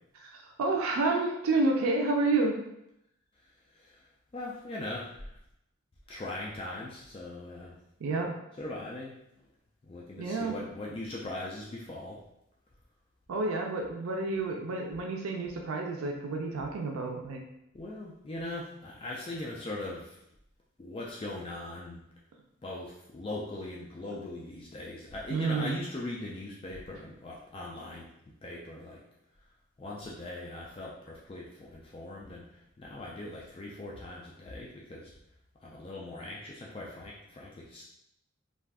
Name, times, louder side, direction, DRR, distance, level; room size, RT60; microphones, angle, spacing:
voice 1, 0.2-2.6 8.0-8.3 10.2-10.6 13.3-17.4 25.3-25.8, right 3 dB, 85° right, 2 dB, 0.4 m, -29 dB
voice 2, 3.7-5.3 6.1-7.8 8.6-9.5 9.8-12.2 17.7-20.2 20.8-22.0 22.6-28.1 28.4-29.0 29.8-35.1 35.6-37.8, left 2 dB, 25° left, -4 dB, 0.3 m, -40 dB
2.5 x 2.3 x 3.3 m, 0.81 s
head